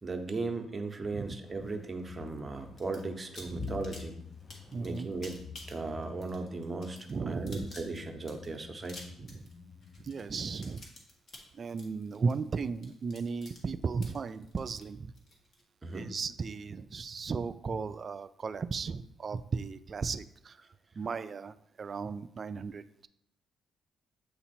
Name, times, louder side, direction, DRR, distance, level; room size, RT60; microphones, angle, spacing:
voice 1, 0.0-4.2 4.8-5.4 5.7-7.0 7.3-9.1 15.8-16.1, right 3 dB, 25° right, 5 dB, 0.8 m, -37 dB
sound 1, 1.4-10.3, left 6 dB, 35° left, 0.4 m, -48 dB
sound 2, 2.8-3.0 3.4-15.6, left 2 dB, 50° left, 1.5 m, -51 dB
voice 2, 4.7-5.1 7.1-7.7 9.2-9.5 10.0-10.8 11.5-15.1 15.9-20.6 21.0-23.1, right 5 dB, 40° right, 13 dB, 0.3 m, -36 dB
8.0 x 2.9 x 4.3 m, 0.74 s
cardioid pair, 90°, 0 cm